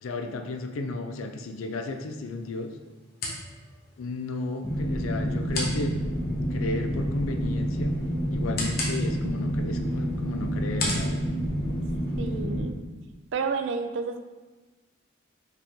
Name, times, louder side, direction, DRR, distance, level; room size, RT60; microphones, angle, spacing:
voice 1, 0.0-2.7 4.0-7.9 8.3-11.2, left 2 dB, 85° left, 6 dB, 0.4 m, -34 dB
sound 1, 1.4-12.4, left 2 dB, 45° left, 0.9 m, -38 dB
sound 2, 4.6-12.6, equal, 15° left, 0.5 m, -29 dB
voice 2, 12.2-12.8 13.3-14.2, right 5 dB, 65° right, 8 dB, 0.4 m, -30 dB
4.9 x 3.0 x 3.5 m, 1.2 s
head